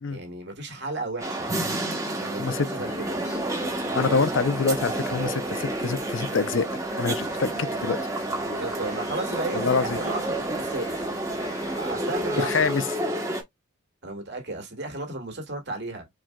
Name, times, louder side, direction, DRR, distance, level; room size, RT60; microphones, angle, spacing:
voice 1, 0.1-1.5 2.2-3.2 3.9-4.2 8.5-11.1 11.8-12.6 14.0-16.1, right 2 dB, 50° right, 1.8 m, -34 dB
sound 1, 1.2-13.4, right 1 dB, 15° right, 1.0 m, -30 dB
sound 2, 2.8-12.6, left 1 dB, 15° left, 0.9 m, -45 dB
voice 2, 3.9-6.7 7.0-8.0 9.5-10.0 12.4-12.8, left 4 dB, 60° left, 0.5 m, -25 dB
4.8 x 4.3 x 2.2 m
head